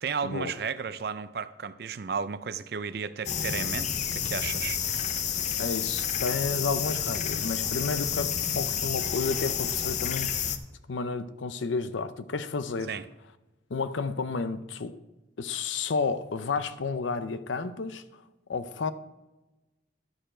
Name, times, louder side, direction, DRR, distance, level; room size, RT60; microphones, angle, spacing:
voice 1, 0.0-4.8 12.9-13.0, right 6 dB, 55° right, 0.4 m, -33 dB
sound 1, 3.3-10.6, left 8 dB, 40° left, 0.5 m, -30 dB
voice 2, 5.6-10.5 10.9-12.9 13.7-15.0 15.4-18.0 18.5-18.9, left 4 dB, 90° left, 0.6 m, -31 dB
11.5 x 6.7 x 4.4 m
head